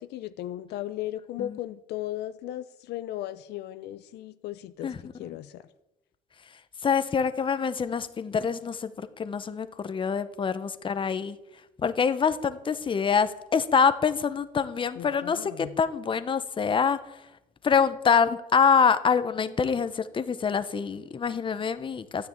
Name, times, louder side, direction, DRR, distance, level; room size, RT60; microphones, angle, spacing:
voice 1, 0.0-4.9 5.2-5.6 15.0-15.7, left 13 dB, 80° left, 12 dB, 0.7 m, -36 dB
voice 2, 4.8-5.3 6.8-11.4 11.8-17.2 17.6-22.3, left 6 dB, 30° left, 12 dB, 1.0 m, -25 dB
13.0 x 9.7 x 8.8 m, 0.95 s
cardioid pair, 110°, 17 cm